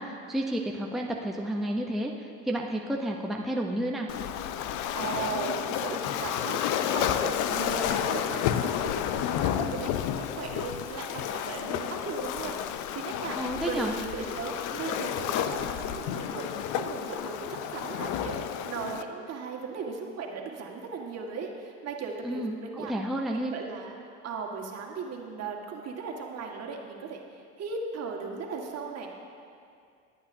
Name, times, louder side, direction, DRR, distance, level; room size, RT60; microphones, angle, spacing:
voice 1, 0.0-4.1 13.3-13.9 22.2-23.5, right 1 dB, ahead, 0 dB, 0.8 m, -31 dB
Waves surf, 4.1-19.0, left 10 dB, 60° left, 0.6 m, -31 dB
voice 2, 4.9-22.9 23.3-24.0 24.2-27.2 27.6-29.1, right 5 dB, 45° right, 0 dB, 1.8 m, -37 dB
20.5 x 8.7 x 2.8 m, 2.3 s
hypercardioid pair, 75°, 35 cm